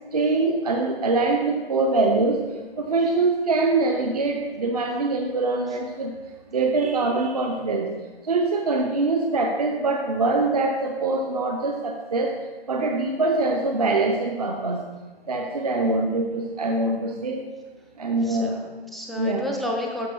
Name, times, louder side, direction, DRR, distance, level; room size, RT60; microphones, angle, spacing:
voice 1, 0.1-2.4 2.8-6.1 6.5-7.9 8.2-12.3 12.7-14.8 15.3-17.4 18.0-18.6 19.2-19.5, right 3 dB, 40° right, 3 dB, 0.7 m, -23 dB
voice 2, 18.2-20.1, left 1 dB, ahead, 0 dB, 0.3 m, -31 dB
12.5 x 4.8 x 4.6 m, 1.3 s
figure-of-eight pair, 160°, 31 cm